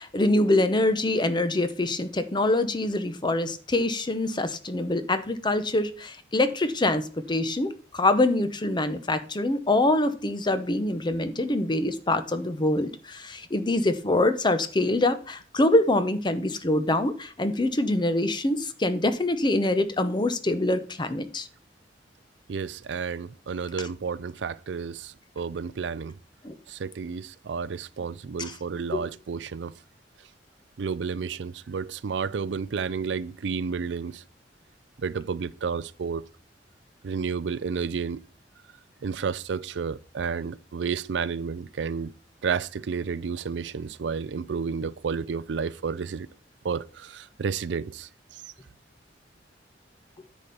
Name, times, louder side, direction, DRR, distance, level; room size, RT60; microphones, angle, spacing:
voice 1, 0.0-21.5 26.4-26.5 28.4-28.5 28.9-29.0, left 2 dB, 25° left, 0.8 m, -25 dB
voice 2, 22.5-26.2 26.7-29.7 30.8-34.2 35.0-36.2 37.0-38.2 39.0-42.1 42.4-46.3 46.6-48.4, right 5 dB, 80° right, 0.4 m, -31 dB
9.7 x 4.3 x 6.8 m
head